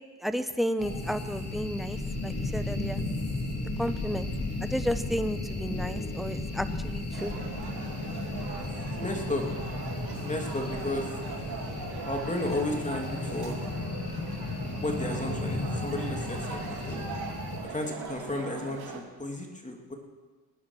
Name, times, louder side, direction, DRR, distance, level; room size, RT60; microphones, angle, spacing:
voice 1, 0.2-3.0 3.8-4.3 4.6-7.3, equal, ahead, 10 dB, 0.9 m, -32 dB
sound 1, 0.8-17.6, left 2 dB, 40° left, 3.1 m, -34 dB
sound 2, 7.1-19.0, right 5 dB, 65° right, 2.2 m, -40 dB
voice 2, 8.9-9.4 10.1-11.2 12.0-13.6 14.8-17.0 17.6-19.9, left 1 dB, 20° left, 1 dB, 2.7 m, -33 dB
18.5 x 10.0 x 6.4 m, 1.4 s
cardioid pair, 85°, 39 cm